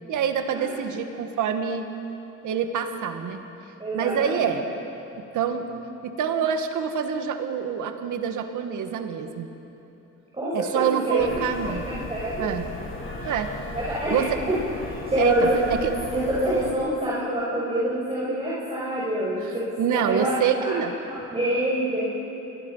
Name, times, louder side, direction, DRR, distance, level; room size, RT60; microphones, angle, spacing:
voice 1, 0.1-1.9 2.4-3.4 3.9-4.7 5.2-5.7 6.0-9.5 10.5-11.9 12.4-12.6 13.2-13.5 14.1-14.4 15.2-15.9 19.8-20.9, right 8 dB, 80° right, 6 dB, 1.9 m, -26 dB
voice 2, 3.8-4.5 10.3-11.2 11.7-12.5 13.7-14.5 14.9-15.6 16.1-20.7 21.3-22.0, right 1 dB, 20° right, -7 dB, 6.4 m, -26 dB
sound 1, 11.2-16.7, left 2 dB, 45° left, 6.0 m, -36 dB
29.0 x 22.0 x 5.7 m, 2.9 s
cardioid pair, 90°, 30 cm